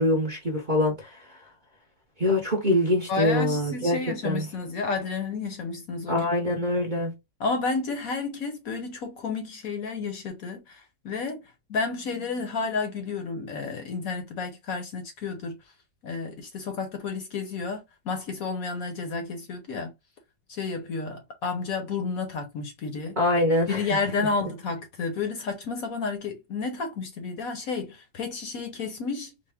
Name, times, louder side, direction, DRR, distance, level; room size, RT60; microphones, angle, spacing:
voice 1, 0.0-1.4 2.2-4.0 4.2-4.5 6.1-7.1 23.2-24.0, left 1 dB, 40° right, 0.7 m, -24 dB
voice 2, 3.1-6.3 7.4-11.4 11.7-15.6 16.0-19.9 20.5-23.2 23.7-29.3, left 4 dB, 60° left, 1.1 m, -31 dB
4.1 x 2.1 x 3.4 m
omnidirectional pair, 1.9 m